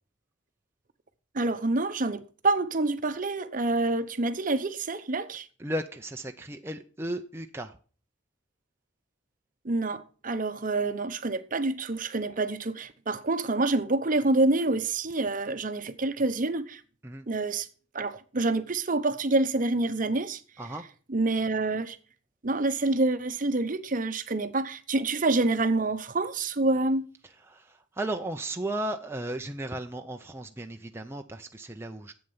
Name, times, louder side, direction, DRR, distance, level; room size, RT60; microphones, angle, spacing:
voice 1, 1.3-5.4 9.6-16.8 17.3-17.7 17.9-20.4 21.1-22.0 22.4-27.0, right 2 dB, 45° right, 0.9 m, -27 dB
voice 2, 5.6-7.8 17.0-17.3 20.6-20.9 27.2-32.1, right 1 dB, 15° right, 0.6 m, -35 dB
11.0 x 8.0 x 5.6 m
head